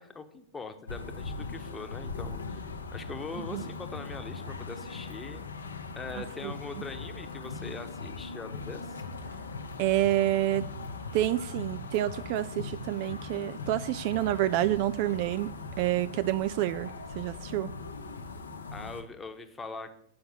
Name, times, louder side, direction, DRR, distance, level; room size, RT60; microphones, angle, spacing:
voice 1, 0.0-5.4 6.0-9.0 18.7-19.9, left 4 dB, 15° left, 1.0 m, -42 dB
sound 1, 0.9-19.0, left 3 dB, 75° left, 0.9 m, -40 dB
voice 2, 6.1-6.5 9.8-10.7 11.1-15.5 15.8-17.7, right 14 dB, 45° right, 0.3 m, -28 dB
8.5 x 5.7 x 7.4 m
figure-of-eight pair, 90°, 0 cm